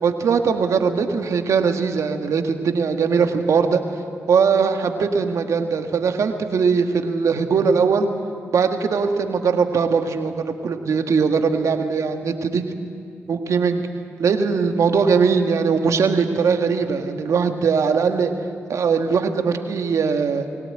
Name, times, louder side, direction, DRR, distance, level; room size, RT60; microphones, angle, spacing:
voice 1, 0.0-3.8 4.3-8.1 8.5-12.6 13.3-13.9 14.2-18.3 18.7-20.5, right 5 dB, 65° right, 5 dB, 1.8 m, -20 dB
22.0 x 17.5 x 9.0 m, 2.3 s
supercardioid pair, 45°, 6 cm